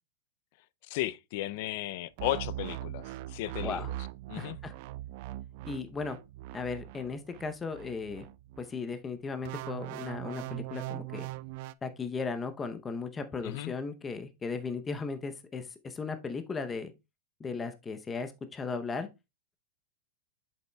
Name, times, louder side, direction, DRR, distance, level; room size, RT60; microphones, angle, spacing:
voice 1, 0.9-3.8 4.3-4.6 13.4-13.7, left 15 dB, 55° left, 0.4 m, -35 dB
sound 1, 2.2-8.7 9.5-11.7, right 16 dB, 50° right, 0.4 m, -40 dB
voice 2, 4.4-4.7 5.6-6.2 6.5-8.3 8.6-11.3 11.8-16.9 17.4-19.1, left 4 dB, 15° left, 0.7 m, -36 dB
7.9 x 7.0 x 2.2 m
supercardioid pair, 145°, 0 cm